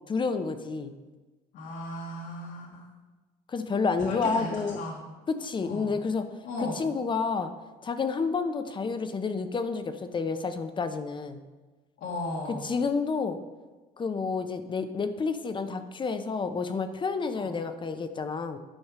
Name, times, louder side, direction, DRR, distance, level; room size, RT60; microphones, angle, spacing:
voice 1, 0.1-0.9 3.5-4.8 5.3-6.3 6.8-7.5 7.8-11.4 12.6-13.4 14.0-18.6, left 4 dB, 30° left, 9 dB, 0.7 m, -29 dB
voice 2, 1.5-2.9 4.0-5.1 5.6-5.9 6.4-6.8 12.0-12.7 17.3-17.5, left 2 dB, 80° left, -4 dB, 1.6 m, -36 dB
9.8 x 5.3 x 4.8 m, 1.2 s
cardioid pair, 110°, 17 cm